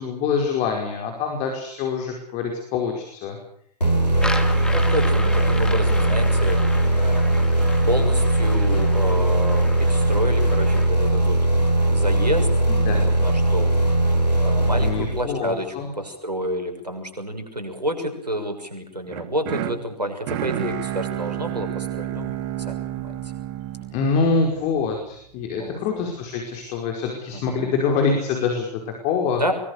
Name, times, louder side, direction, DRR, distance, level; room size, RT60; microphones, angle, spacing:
voice 1, 0.0-3.4 12.7-13.0 14.8-15.9 23.9-29.4, left 5 dB, 35° left, 3 dB, 5.3 m, -25 dB
sound 1, 3.8-15.5, right 1 dB, 90° left, 5.9 m, -20 dB
sound 2, 4.1-10.9, left 1 dB, 5° left, 2.6 m, -34 dB
voice 2, 4.6-7.6 7.9-11.4 11.9-12.5 12.9-13.8 14.4-23.2 25.6-26.0 27.3-27.7 29.3-29.5, equal, 85° right, 6 dB, 6.4 m, -29 dB
sound 3, 19.1-25.2, right 13 dB, 40° right, 2.1 m, -31 dB
23.5 x 23.0 x 6.9 m, 0.65 s
figure-of-eight pair, 105°, 20 cm